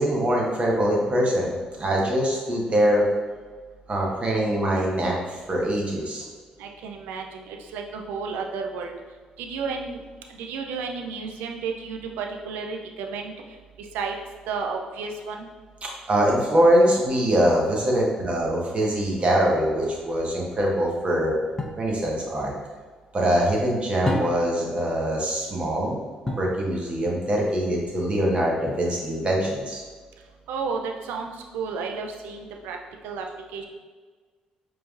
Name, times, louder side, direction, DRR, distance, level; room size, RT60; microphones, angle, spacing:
voice 1, 0.0-1.5 1.8-3.0 3.9-6.3 15.8-21.3 21.8-22.5 23.1-26.0 26.4-29.8, equal, 35° right, -2 dB, 1.1 m, -23 dB
voice 2, 6.6-8.9 9.4-10.0 10.3-13.3 13.8-14.2 14.5-15.5 30.5-32.8 33.0-33.3 33.5-33.6, right 5 dB, 75° right, 3 dB, 0.4 m, -32 dB
sound 1, 21.6-21.9 24.0-24.7 26.2-26.6 28.7-29.2, left 1 dB, 15° left, 0.7 m, -30 dB
4.9 x 3.2 x 2.4 m, 1.4 s
hypercardioid pair, 45°, 3 cm